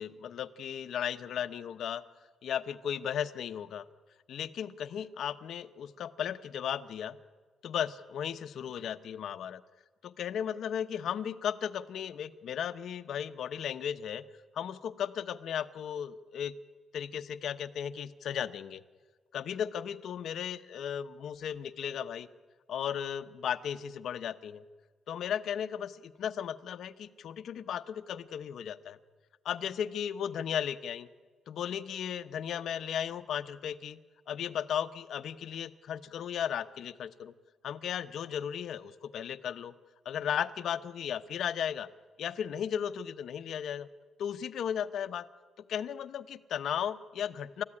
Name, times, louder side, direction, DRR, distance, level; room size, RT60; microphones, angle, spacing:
voice 1, 0.0-2.0 2.4-3.8 4.3-7.2 7.6-9.6 10.0-14.2 14.5-16.5 16.9-18.8 19.3-22.3 22.7-24.6 25.1-29.0 29.4-31.1 31.5-34.0 34.3-37.3 37.6-39.7 40.0-41.9 42.2-43.9 44.2-45.3 45.7-47.6, left 9 dB, 65° left, 11 dB, 0.9 m, -35 dB
29.0 x 14.5 x 9.8 m, 1.5 s
cardioid pair, 150°, 0 cm